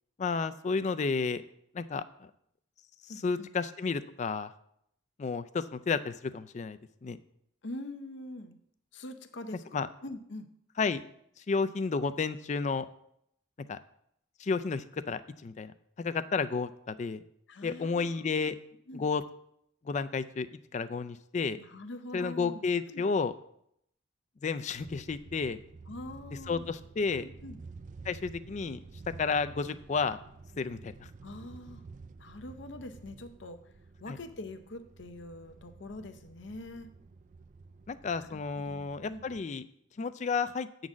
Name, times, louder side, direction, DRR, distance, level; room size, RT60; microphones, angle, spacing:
voice 1, 0.2-1.4 1.7-2.3 3.2-4.5 5.2-7.2 9.7-9.9 10.8-11.0 11.5-12.9 13.7-13.8 14.4-15.7 16.0-17.2 17.6-18.6 18.9-19.2 19.9-20.5 20.7-21.6 22.1-23.3 24.4-25.6 26.5-27.2 28.1-28.8 29.2-30.2 30.6-30.9 34.1-34.2 37.9-39.6 40.0-40.7, left 4 dB, 40° left, 13 dB, 0.3 m, -31 dB
voice 2, 3.1-3.5 7.6-8.6 8.9-10.5 17.5-18.5 18.9-19.0 21.6-23.1 25.9-26.7 27.1-27.6 31.2-31.8 32.2-33.6 34.0-36.9 38.2-39.2, left 1 dB, 70° left, 8 dB, 0.7 m, -44 dB
sound 1, 24.7-39.4, right 4 dB, 40° right, 0.3 m, -51 dB
8.5 x 4.0 x 6.1 m, 0.73 s
head